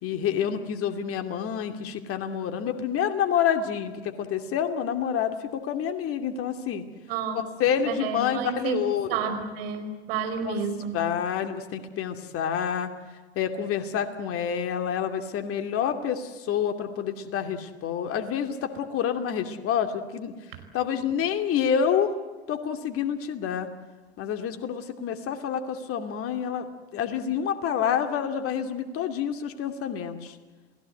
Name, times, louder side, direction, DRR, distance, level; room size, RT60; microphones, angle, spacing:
voice 1, 0.0-6.8 7.6-9.2 10.4-10.6 10.9-12.9 13.4-20.3 20.7-22.1 22.5-23.7 24.2-26.7 26.9-30.4, left 8 dB, 45° left, 7 dB, 2.6 m, -28 dB
voice 2, 7.1-7.5 7.8-8.8 9.1-11.0, right 6 dB, 65° right, 7 dB, 4.9 m, -30 dB
29.0 x 18.0 x 7.9 m, 1.4 s
figure-of-eight pair, 75°, 32 cm